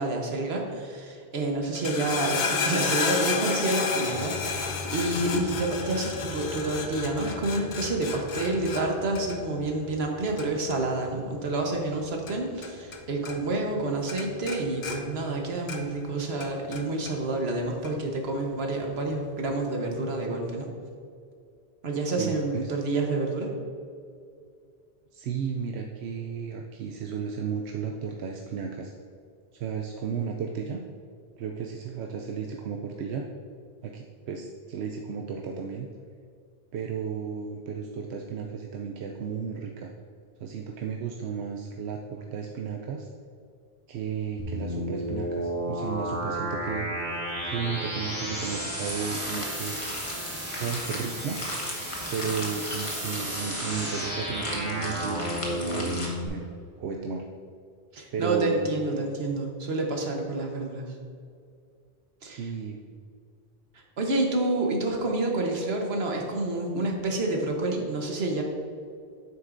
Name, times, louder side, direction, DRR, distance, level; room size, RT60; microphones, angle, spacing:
voice 1, 0.0-20.7 21.8-23.5 57.9-60.8 62.2-62.4 64.0-68.4, right 2 dB, 75° right, 1 dB, 1.4 m, -28 dB
sound 1, 1.6-13.0 13.2-13.8 14.1-16.0 16.4-17.1 17.8-17.9, left 4 dB, 50° left, 0.7 m, -32 dB
voice 2, 22.2-22.7 25.1-28.9 29.5-30.8 31.4-33.3 33.8-35.9 36.7-39.9 40.4-43.1 43.9-46.9 47.4-49.8 50.6-51.4 52.1-56.5 56.8-57.3 58.1-59.1 62.3-62.8, right 6 dB, 90° right, 1 dB, 0.9 m, -34 dB
sound 2, 44.4-56.3, equal, 35° right, 1.7 m, -33 dB
sound 3, 48.1-56.1, left 1 dB, 30° left, 1.4 m, -37 dB
9.4 x 7.8 x 2.6 m, 2.3 s
omnidirectional pair, 1.1 m